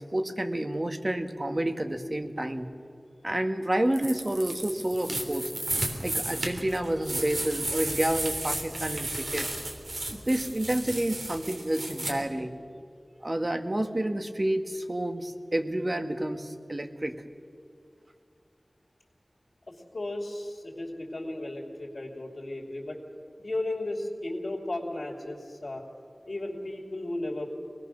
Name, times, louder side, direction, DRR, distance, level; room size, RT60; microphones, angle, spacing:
voice 1, 0.0-2.7 3.2-5.5 6.0-9.5 10.1-12.5 13.2-17.2, right 1 dB, 35° right, 7 dB, 1.6 m, -29 dB
sound 1, 3.9-12.1, right 1 dB, 75° right, 3.3 m, -33 dB
voice 2, 19.7-23.0 23.4-25.8 26.2-27.5, left 1 dB, 65° left, -3 dB, 3.0 m, -35 dB
25.0 x 19.5 x 6.6 m, 2.4 s
wide cardioid pair, 50°, 0 cm